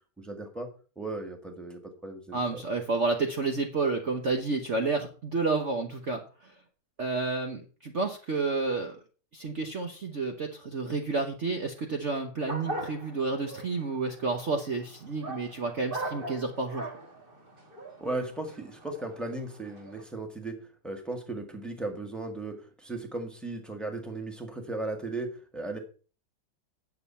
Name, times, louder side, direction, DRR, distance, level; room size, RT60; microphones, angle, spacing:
voice 1, 0.2-0.7 0.9-2.6 18.0-20.6 20.8-25.8, right 2 dB, ahead, 3 dB, 1.6 m, -36 dB
voice 2, 2.3-6.5 7.0-9.0 9.3-16.9, right 3 dB, 45° right, 3 dB, 1.2 m, -30 dB
sound 1, 12.5-20.0, right 1 dB, 30° right, 2.1 m, -40 dB
9.6 x 6.8 x 5.6 m, 0.37 s
omnidirectional pair, 2.0 m